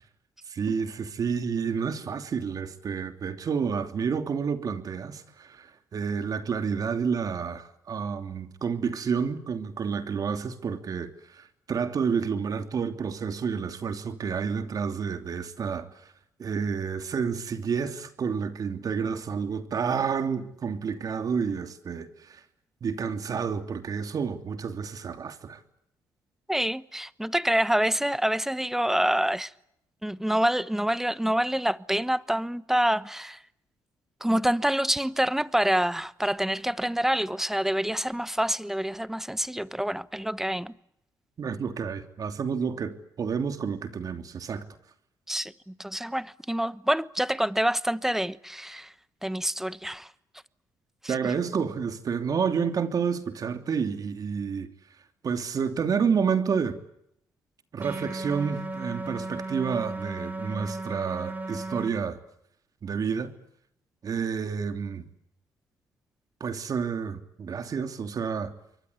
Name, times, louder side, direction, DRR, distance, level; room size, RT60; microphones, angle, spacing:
voice 1, 0.5-16.1 16.4-22.4 22.8-25.6 41.4-44.6 51.1-54.7 55.2-56.8 57.7-62.2 62.8-63.3 64.0-65.1 66.4-68.5, right 6 dB, 55° right, 2.9 m, -29 dB
voice 2, 26.5-29.5 30.0-33.4 34.2-40.7 45.3-48.9 49.2-50.1 51.0-51.3, right 1 dB, 5° right, 1.1 m, -27 dB
sound 1, 57.8-61.9, right 2 dB, 20° right, 4.7 m, -35 dB
28.5 x 23.5 x 8.3 m
cardioid pair, 70°, 7 cm